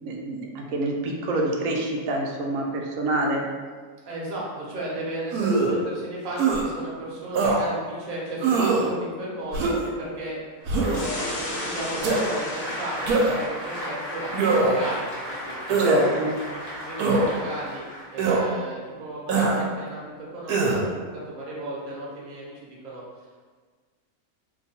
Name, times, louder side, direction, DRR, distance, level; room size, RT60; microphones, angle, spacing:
voice 1, 0.0-3.4 15.8-16.3, right 2 dB, 70° right, 0 dB, 0.9 m, -26 dB
voice 2, 4.1-10.4 10.7-16.0 16.7-17.9 18.1-20.9 21.1-23.0, right 1 dB, 40° right, -6 dB, 0.8 m, -35 dB
sound 1, 5.3-5.8 6.4-6.6 7.3-7.6 8.4-8.9 9.5-9.9 10.7-11.1 12.0-12.2 13.1-13.5 14.3-14.9 15.7-16.0 17.0-17.3 18.2-18.4 19.3-19.6 20.5-20.8, right 3 dB, 85° right, 1.1 m, -22 dB
Applause, 10.6-18.3, equal, 40° left, 1.1 m, -35 dB
sound 2, 10.9-13.4, left 2 dB, 75° left, 1.1 m, -35 dB
2.8 x 2.3 x 4.1 m, 1.5 s
omnidirectional pair, 1.6 m